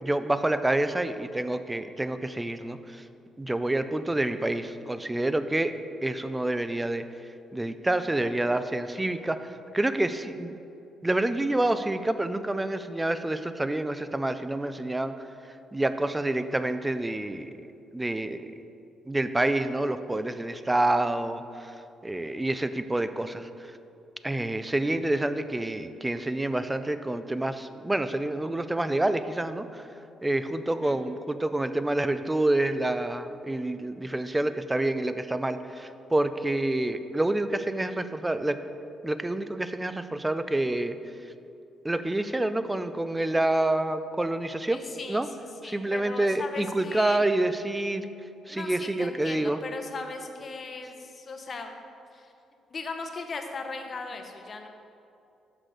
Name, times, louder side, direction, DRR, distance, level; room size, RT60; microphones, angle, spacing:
voice 1, 0.0-3.0 3.4-5.7 6.0-7.0 7.5-10.6 11.0-15.1 15.7-17.5 17.9-18.4 19.1-21.7 22.0-23.7 24.2-29.8 30.2-38.6 39.0-40.9 41.8-44.8 45.1-45.3 45.6-48.1 48.5-49.6, right 1 dB, 15° right, 11 dB, 0.4 m, -28 dB
voice 2, 30.6-31.0 44.7-47.3 48.5-51.7 52.1-52.3 52.7-54.7, left 3 dB, 40° left, 4 dB, 0.8 m, -38 dB
6.5 x 5.9 x 5.1 m, 2.7 s
cardioid pair, 90°, 0 cm